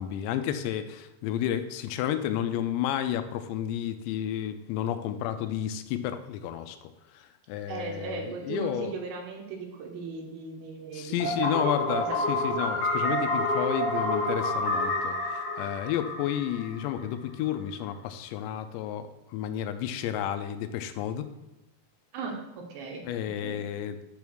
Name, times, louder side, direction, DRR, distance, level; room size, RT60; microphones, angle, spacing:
voice 1, 0.0-8.9 10.9-21.3 23.0-24.0, left 10 dB, 85° left, 10 dB, 2.7 m, -31 dB
voice 2, 7.7-12.2 22.1-22.4 22.7-23.0 23.4-23.7, right 4 dB, 75° right, 2 dB, 2.9 m, -37 dB
sound 1, 11.2-17.0, left 1 dB, 60° left, 2.9 m, -29 dB
9.7 x 3.5 x 6.1 m, 0.95 s
omnidirectional pair, 5.1 m